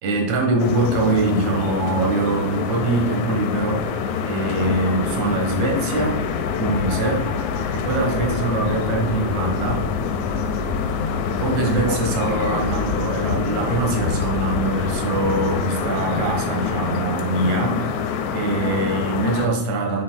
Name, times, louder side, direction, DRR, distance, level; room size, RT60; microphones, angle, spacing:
voice 1, 0.0-3.9 4.2-6.2 6.5-7.3 7.7-9.9 11.4-17.9 18.3-20.0, right 3 dB, 65° right, 0 dB, 2.5 m, -23 dB
sound 1, 0.6-19.5, left 6 dB, 80° left, 1.8 m, -25 dB
8.5 x 6.6 x 2.3 m, 1.0 s
omnidirectional pair, 3.8 m